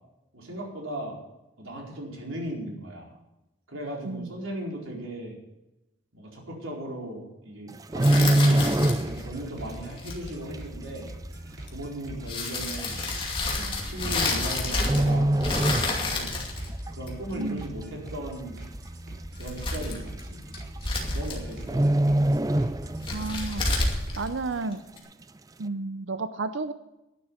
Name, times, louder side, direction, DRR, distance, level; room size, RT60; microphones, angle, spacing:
voice 1, 0.3-1.2 1.6-3.1 3.7-5.4 6.1-11.1 11.7-13.0 13.5-16.3 16.9-18.6 19.4-20.4 21.1-21.9, right 1 dB, 90° right, -1 dB, 4.5 m, -37 dB
sound 1, 7.7-9.4 9.7-10.0 10.5-10.6 11.5-11.6 11.8-11.9 12.8-13.0 14.1-14.5 14.8-16.4 16.7-16.9 17.4-17.9 18.3-18.4 18.6-18.7 19.1-19.2 20.2-20.3 20.5-20.8 21.1-21.2 21.6-23.3 23.6-23.7, right 1 dB, 20° right, 0.4 m, -23 dB
sound 2, 8.0-9.2 9.9-10.3 11.7-11.8 12.3-15.1 15.4-17.3 19.2-20.2 20.5-21.6 22.9-25.0, left 2 dB, 25° left, 2.4 m, -30 dB
sound 3, 8.1-24.3, right 1 dB, 55° right, 3.7 m, -42 dB
voice 2, 17.3-17.7 23.1-23.7 24.2-24.8 25.6-26.7, right 3 dB, 70° right, 11 dB, 0.6 m, -32 dB
11.5 x 10.0 x 7.0 m, 0.95 s
head